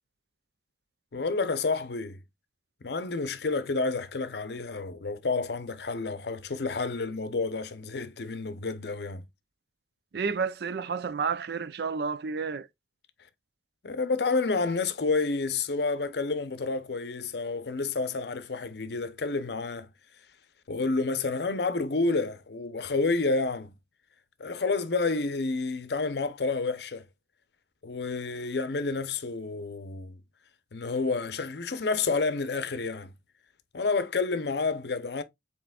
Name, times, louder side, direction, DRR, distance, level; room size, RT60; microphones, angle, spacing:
voice 1, 1.1-2.2 2.8-9.2 13.8-19.9 20.7-23.8 24.4-27.0 27.8-30.2 30.7-33.1 33.7-35.2, left 3 dB, 65° left, 0.6 m, -29 dB
voice 2, 10.1-12.7, right 5 dB, 65° right, 0.4 m, -30 dB
7.6 x 3.0 x 2.3 m
head